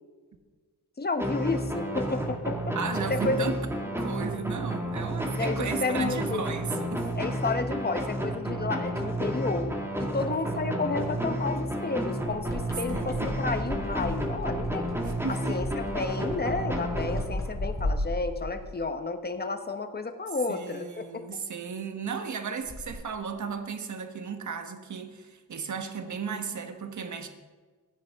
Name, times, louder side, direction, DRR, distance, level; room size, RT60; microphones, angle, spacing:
voice 1, 1.0-2.8 3.1-3.5 5.4-6.5 7.2-9.7 10.0-14.9 15.3-21.2, left 3 dB, 25° left, 8 dB, 1.1 m, -31 dB
sound 1, 1.2-17.7, right 1 dB, 5° right, 2.1 m, -31 dB
voice 2, 2.7-3.6 4.0-7.1 12.9-13.4 15.2-15.6 20.5-27.3, right 6 dB, 55° right, 7 dB, 1.4 m, -35 dB
sound 2, 12.2-18.8 22.6-22.9, left 1 dB, 10° left, 4.4 m, -35 dB
16.0 x 9.8 x 3.7 m, 1.4 s
cardioid pair, 95°, 36 cm